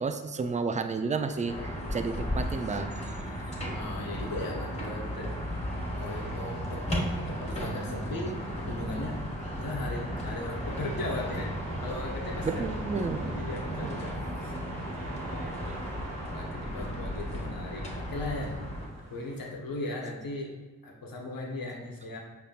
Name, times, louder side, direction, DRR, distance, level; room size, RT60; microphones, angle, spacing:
voice 1, 0.0-2.9 3.5-3.6 12.4-13.4 13.8-13.9, right 4 dB, 20° right, 8 dB, 0.3 m, -32 dB
sound 1, 1.1-19.5, right 3 dB, 45° right, 0.7 m, -49 dB
sound 2, 1.4-18.9, equal, 20° left, 1.4 m, -35 dB
voice 2, 3.7-5.3 5.9-8.4 8.7-9.2 9.6-11.5 11.8-12.6 13.3-14.5 14.9-15.8 16.3-18.6 19.1-20.6 20.8-22.2, left 2 dB, 70° left, -1 dB, 1.0 m, -37 dB
5.1 x 2.7 x 2.4 m, 1.3 s
cardioid pair, 55°, 35 cm